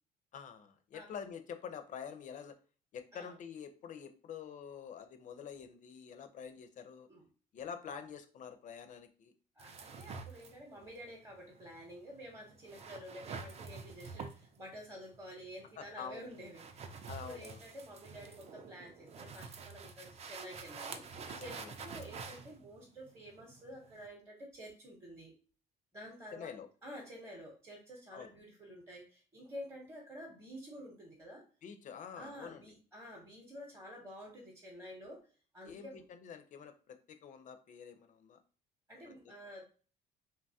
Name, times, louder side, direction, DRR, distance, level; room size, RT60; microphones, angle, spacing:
voice 1, 0.3-2.6 2.9-7.1 7.5-9.3 15.8-16.2 17.1-17.6 21.3-22.0 26.3-26.7 28.1-28.3 31.6-32.7 35.7-38.4 39.1-39.2, left 7 dB, 50° left, 8 dB, 0.4 m, -47 dB
voice 2, 9.6-25.3 25.9-26.5 26.8-31.4 32.2-35.2 35.5-36.0 38.9-39.6, equal, 15° right, 0 dB, 0.8 m, -50 dB
sound 1, 9.6-24.1, right 5 dB, 40° right, 0.4 m, -48 dB
2.8 x 2.2 x 2.7 m, 0.38 s
cardioid pair, 110°, 17 cm